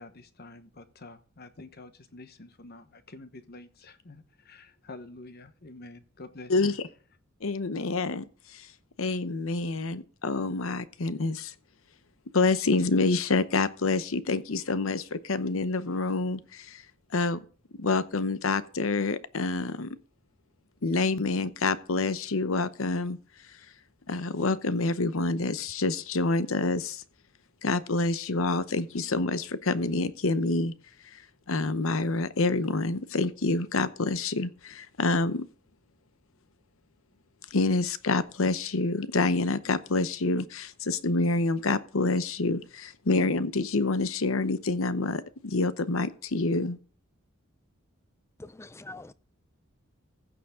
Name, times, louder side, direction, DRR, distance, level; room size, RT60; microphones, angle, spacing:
voice 1, 0.0-6.8, left 2 dB, 45° left, 1.1 m, -48 dB
voice 2, 7.4-8.7 9.0-11.5 12.3-16.8 17.1-17.4 17.8-20.0 20.8-23.2 24.1-27.0 27.6-30.7 31.1-31.2 31.5-35.5 37.5-46.8, left 3 dB, 70° left, 0.8 m, -27 dB
voice 3, 48.4-49.1, left 2 dB, 15° left, 0.4 m, -44 dB
15.0 x 6.9 x 3.7 m
head